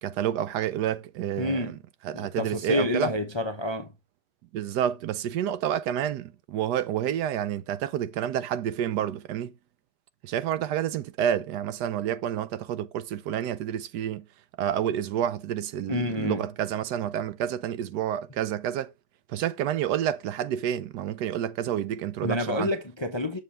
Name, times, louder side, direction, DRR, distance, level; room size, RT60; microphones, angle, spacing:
voice 1, 0.0-1.8 2.0-3.1 4.5-9.5 10.2-14.3 14.6-18.9 19.3-22.7, right 10 dB, 75° right, 1.2 m, -29 dB
voice 2, 1.4-1.7 2.1-3.9 15.9-16.4 22.2-23.4, left 1 dB, 30° left, 0.5 m, -28 dB
7.4 x 6.9 x 3.3 m
omnidirectional pair, 1.9 m